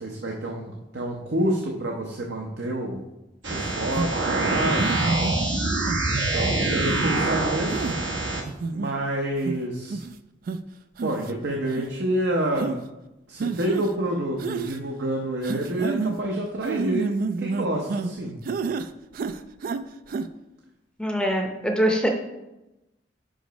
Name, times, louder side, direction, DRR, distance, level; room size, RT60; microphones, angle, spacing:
voice 1, 0.0-3.0 3.5-5.2 6.0-7.9 8.7-10.0 11.0-12.8 13.3-18.4, right 1 dB, 65° right, 0 dB, 0.8 m, -28 dB
sound 1, 3.4-8.4, right 2 dB, 85° right, 1.2 m, -25 dB
sound 2, 4.0-4.1 4.8-5.3 5.9-6.3 6.9-7.1 7.7-8.0 8.5-8.9 9.5-9.6 9.9-10.1 10.5-10.6 11.0-11.3 11.7-11.8 12.6-12.8 13.4-13.9 14.4-14.8 15.4-16.2 16.6-18.1 18.5-18.9 19.1-19.8 20.1-20.2, right 4 dB, 50° right, 0.3 m, -29 dB
voice 2, 21.0-22.1, equal, 5° left, 2 dB, 0.6 m, -23 dB
5.0 x 5.0 x 5.0 m, 0.95 s
head